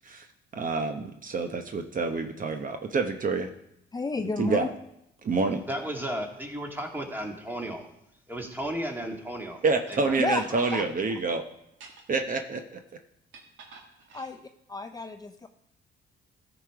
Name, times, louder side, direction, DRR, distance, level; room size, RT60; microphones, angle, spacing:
voice 1, 0.5-3.5 4.4-4.7 5.2-5.6 9.6-11.4 12.1-12.8, right 4 dB, 45° right, 0.9 m, -27 dB
voice 2, 3.9-4.7 10.2-10.5 10.7-10.8 14.1-14.4 14.7-15.5, left 3 dB, 20° left, 0.5 m, -31 dB
voice 3, 5.7-7.9 8.3-9.6 9.9-10.2 10.5-10.7, right 1 dB, 10° right, 1.9 m, -34 dB
sound 1, 9.9-10.0 10.4-10.9 11.7-12.2 13.3-14.3, right 4 dB, 80° right, 1.6 m, -48 dB
13.5 x 5.0 x 4.8 m
cardioid pair, 90°, 20 cm